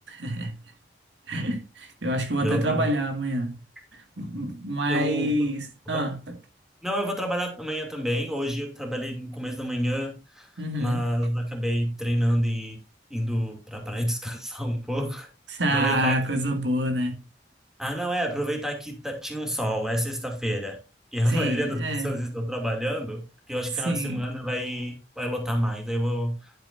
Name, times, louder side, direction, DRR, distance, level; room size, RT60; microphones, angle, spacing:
voice 1, 0.1-0.5 1.3-3.6 4.2-6.2 10.6-11.0 15.5-17.2 21.3-22.1 23.8-24.2, right 1 dB, 80° right, 2.1 m, -27 dB
voice 2, 2.4-2.9 4.9-5.5 5.9-6.1 6.8-12.8 13.1-15.3 15.7-16.2 17.8-20.8 21.1-26.5, equal, 5° right, 2.6 m, -28 dB
11.5 x 8.8 x 2.6 m
head